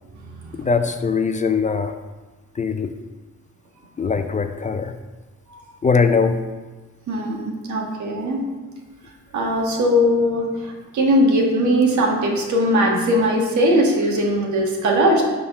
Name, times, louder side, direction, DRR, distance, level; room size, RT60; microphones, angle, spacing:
voice 1, 0.6-1.9 2.6-2.9 4.0-5.0 5.8-6.4, left 5 dB, 25° left, 8 dB, 0.4 m, -21 dB
voice 2, 7.1-8.4 9.3-15.2, equal, 70° right, 0 dB, 1.5 m, -20 dB
6.9 x 3.7 x 5.4 m, 1.3 s
cardioid pair, 90°, 30 cm